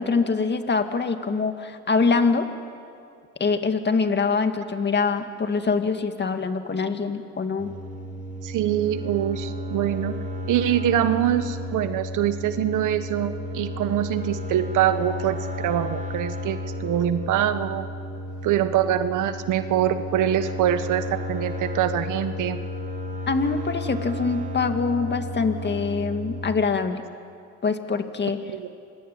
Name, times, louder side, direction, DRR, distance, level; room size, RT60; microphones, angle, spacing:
voice 1, 0.0-2.5 3.4-7.7 23.3-27.0 27.6-28.4, left 4 dB, 35° left, 7 dB, 2.1 m, -24 dB
sound 1, 7.6-26.5, left 1 dB, 25° right, 2.9 m, -33 dB
voice 2, 8.4-10.2 10.5-17.9 18.4-22.6 28.3-28.7, right 11 dB, 85° right, 10 dB, 1.4 m, -24 dB
26.5 x 23.0 x 9.6 m, 2.4 s
cardioid pair, 90°, 30 cm